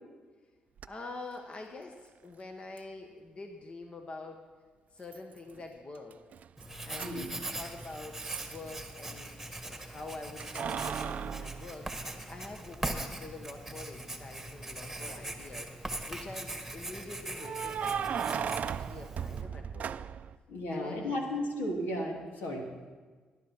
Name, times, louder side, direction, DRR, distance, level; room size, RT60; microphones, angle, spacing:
voice 1, 0.8-4.4 4.9-6.2 6.8-9.3 9.6-19.9 20.7-21.5, left 3 dB, 40° left, 3 dB, 1.3 m, -46 dB
Keys jangling, 0.8-0.9 2.8-2.9 5.1-5.7 5.9-9.1 10.4-12.5 13.0-13.1 14.9-15.4 17.4-20.4, right 8 dB, 55° right, 0.4 m, -37 dB
Writing, 6.6-19.4, right 1 dB, 5° right, 1.7 m, -41 dB
voice 2, 7.0-7.3 20.5-22.9, left 1 dB, 80° left, 0 dB, 3.0 m, -34 dB
17.0 x 11.0 x 4.5 m, 1.4 s
cardioid pair, 90°, 3 cm